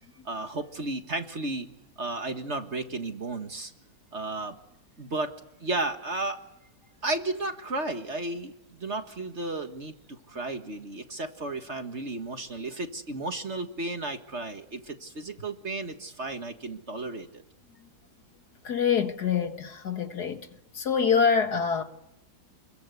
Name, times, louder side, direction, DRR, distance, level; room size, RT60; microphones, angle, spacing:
voice 1, 0.3-1.7 2.0-3.7 4.1-4.6 5.0-5.3 5.6-6.4 7.0-17.4, right 2 dB, 40° right, 1.7 m, -33 dB
voice 2, 18.6-20.5 20.7-21.8, left 6 dB, 60° left, 2.2 m, -25 dB
30.0 x 22.5 x 8.2 m
omnidirectional pair, 1.9 m